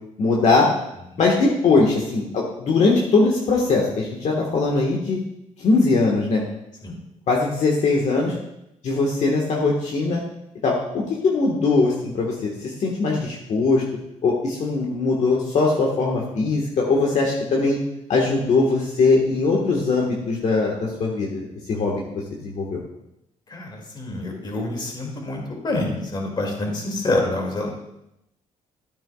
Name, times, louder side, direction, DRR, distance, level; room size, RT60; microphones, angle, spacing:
voice 1, 0.2-0.7 1.2-5.2 5.6-6.4 7.3-8.3 8.8-10.2 10.6-13.8 14.2-17.8 18.1-22.8, left 3 dB, 60° left, -2 dB, 1.5 m, -21 dB
voice 2, 23.5-27.7, left 2 dB, 35° left, 0 dB, 2.4 m, -27 dB
13.0 x 8.8 x 2.4 m, 0.83 s
cardioid pair, 110°, 13 cm